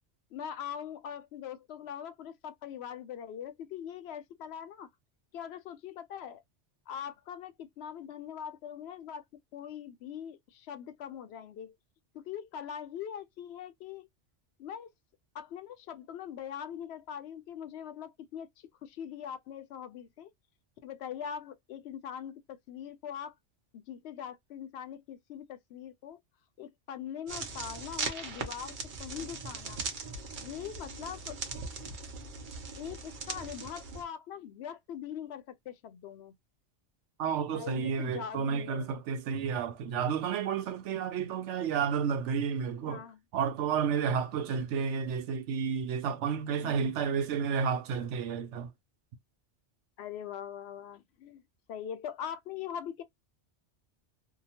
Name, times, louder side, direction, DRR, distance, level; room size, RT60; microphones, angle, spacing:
voice 1, 0.3-4.9 5.3-6.4 6.9-11.8 12.1-14.1 14.6-14.9 15.3-20.3 20.8-23.3 23.7-26.2 26.6-28.7 29.0-29.8 30.4-31.4 32.8-36.3 37.5-38.9 42.9-43.2 46.6-47.0 50.0-51.4 51.7-53.0, left 9 dB, 70° left, 0.8 m, -42 dB
sound 1, 27.3-34.0, right 4 dB, 50° right, 0.8 m, -39 dB
voice 2, 37.2-43.0 43.3-48.7, right 6 dB, 85° right, 0.9 m, -31 dB
2.8 x 2.1 x 2.8 m
omnidirectional pair, 1.2 m